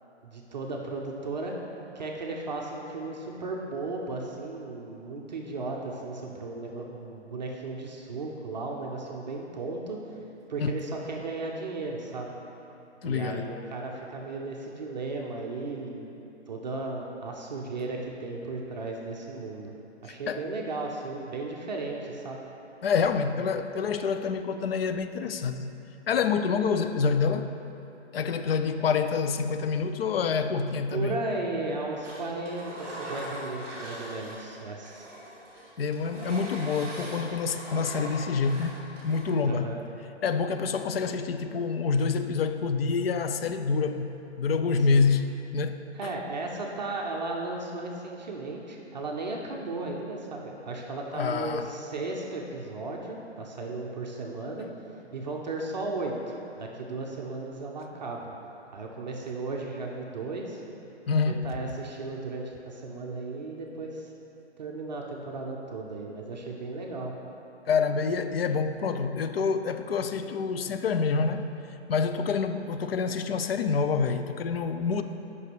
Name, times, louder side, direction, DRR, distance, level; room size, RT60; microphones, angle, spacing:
voice 1, 0.2-1.6 1.9-10.0 10.5-12.4 13.0-16.2 16.5-19.7 20.0-22.4 30.9-35.1 39.4-39.8 44.9-45.0 45.9-54.7 55.1-58.3 58.7-60.6 61.3-64.1 64.6-67.1, right 3 dB, 40° right, -1 dB, 0.6 m, -35 dB
voice 2, 13.0-13.5 20.1-20.4 22.8-25.7 26.1-27.6 28.1-31.1 35.8-38.8 39.0-39.7 40.2-44.1 44.4-46.1 51.1-51.7 61.1-61.6 67.7-71.4 71.9-75.0, left 5 dB, 55° left, 9 dB, 0.5 m, -27 dB
Engine, 32.0-34.5 34.8-39.2, equal, 5° right, 0.9 m, -41 dB
5.5 x 5.4 x 6.0 m, 2.9 s
hypercardioid pair, 160°, 35 cm